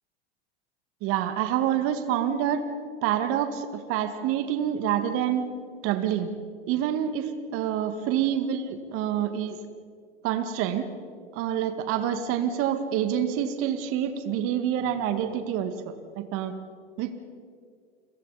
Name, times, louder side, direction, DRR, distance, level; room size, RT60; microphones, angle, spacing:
voice 1, 1.0-2.6 3.0-5.5 5.8-6.3 6.7-9.6 10.2-10.9 11.3-16.5 17.0-17.2, right 10 dB, 45° right, 8 dB, 1.9 m, -27 dB
30.0 x 24.0 x 4.2 m, 2.1 s
hypercardioid pair, 95°, 30 cm